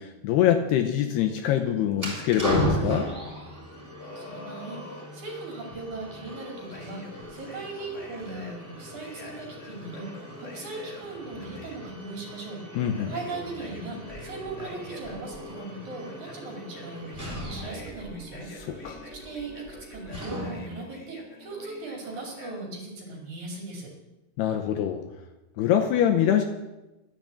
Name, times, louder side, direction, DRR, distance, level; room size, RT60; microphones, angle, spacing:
voice 1, 0.0-3.1 12.8-13.1 18.6-19.0 24.4-25.0 25.6-26.4, left 10 dB, 75° left, 5 dB, 2.6 m, -24 dB
sound 1, 1.9-20.8, equal, 5° right, 3.1 m, -37 dB
sound 2, 4.0-5.1 6.1-11.8 12.6-22.6, left 1 dB, 40° left, 0.9 m, -46 dB
voice 2, 4.1-12.6 13.1-23.9, right 3 dB, 50° right, 1 dB, 3.4 m, -39 dB
12.0 x 10.5 x 7.6 m, 1.0 s
omnidirectional pair, 5.2 m